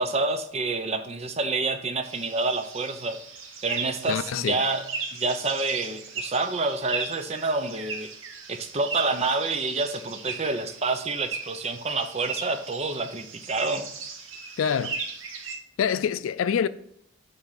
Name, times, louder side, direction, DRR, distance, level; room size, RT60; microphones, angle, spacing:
voice 1, 0.0-3.2 3.6-4.8 5.1-8.1 8.5-13.9, right 3 dB, 30° right, 0.5 m, -28 dB
sound 1, 2.0-15.6, right 5 dB, 80° right, 1.0 m, -38 dB
voice 2, 4.1-4.6 14.6-15.0 15.8-16.7, left 7 dB, 85° left, 0.3 m, -26 dB
7.3 x 3.4 x 5.4 m
head